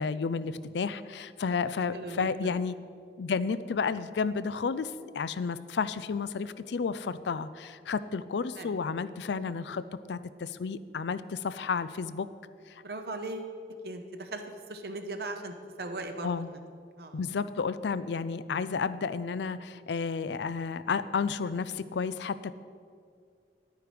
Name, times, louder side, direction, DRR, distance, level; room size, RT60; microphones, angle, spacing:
voice 1, 0.0-2.7 3.2-9.8 10.1-12.3 12.7-12.8 16.2-16.5 17.1-22.5, left 5 dB, 80° left, 15 dB, 0.4 m, -32 dB
voice 2, 1.9-2.6 8.6-8.8 12.8-13.5 13.8-14.4 14.7-16.6 17.0-17.2, right 2 dB, 60° right, 6 dB, 0.7 m, -38 dB
11.0 x 9.3 x 5.1 m, 2.2 s
head